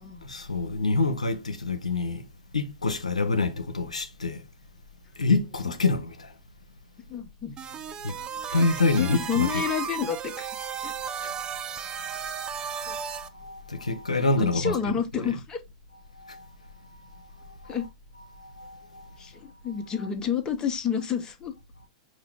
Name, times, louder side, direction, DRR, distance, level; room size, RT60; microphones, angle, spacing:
voice 1, 0.2-2.2 2.5-4.4 5.2-6.3 8.0-8.1 8.5-9.6 11.2-11.3 12.6-14.9 16.2-16.5 17.4-17.8 18.4-19.1, left 3 dB, 85° left, 0.6 m, -27 dB
voice 2, 7.1-7.6 8.5-8.7 9.0-10.9 12.9-13.0 14.2-15.6 17.7-17.9 19.2-21.5, left 7 dB, 20° left, 0.9 m, -30 dB
sound 1, 7.6-13.3, right 7 dB, 20° right, 0.5 m, -34 dB
5.6 x 2.5 x 3.5 m
figure-of-eight pair, 105°, 4 cm